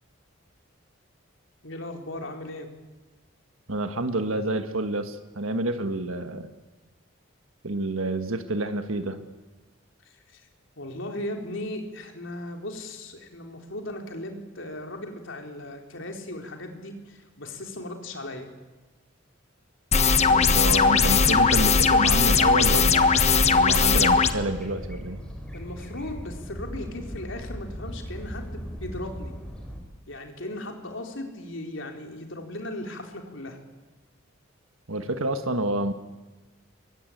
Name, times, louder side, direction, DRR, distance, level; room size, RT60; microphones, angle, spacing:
voice 1, 1.6-2.7 10.0-10.5 10.8-18.5 25.5-29.3 30.1-33.6, left 1 dB, 65° left, 3 dB, 3.9 m, -37 dB
voice 2, 3.7-6.5 7.6-9.2 20.3-25.2 34.9-35.9, right 2 dB, 90° right, 8 dB, 1.5 m, -29 dB
sound 1, 19.9-24.3, left 5 dB, 35° left, 1.2 m, -19 dB
sound 2, 20.8-29.8, equal, 5° left, 5.2 m, -38 dB
25.0 x 23.0 x 9.3 m, 1.2 s
head